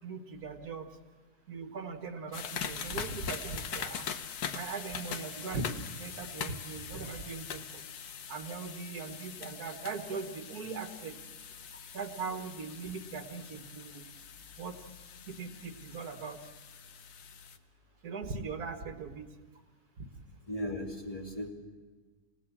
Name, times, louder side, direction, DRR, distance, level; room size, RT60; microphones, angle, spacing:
voice 1, 0.0-1.0 1.5-4.1 4.5-7.8 8.3-11.2 11.9-14.0 14.6-14.8 15.3-16.4 18.0-19.3 20.0-20.1, right 4 dB, 75° right, 6 dB, 2.0 m, -40 dB
sound 1, 2.3-17.6, left 7 dB, 85° left, 1.6 m, -42 dB
voice 2, 20.5-21.5, left 1 dB, 20° left, 1 dB, 2.8 m, -36 dB
27.5 x 17.5 x 7.3 m, 1.4 s
omnidirectional pair, 1.6 m